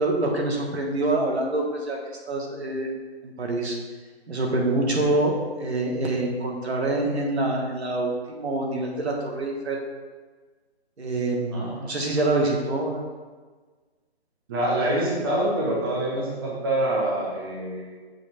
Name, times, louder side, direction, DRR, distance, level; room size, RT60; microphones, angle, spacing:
voice 1, 0.0-2.0 2.3-2.9 3.2-3.8 4.3-9.8 11.0-13.1, right 2 dB, 75° right, 0 dB, 1.7 m, -26 dB
voice 2, 14.5-18.0, right 1 dB, 20° right, -4 dB, 0.9 m, -26 dB
6.3 x 3.2 x 5.9 m, 1.4 s
hypercardioid pair, 165°, 32 cm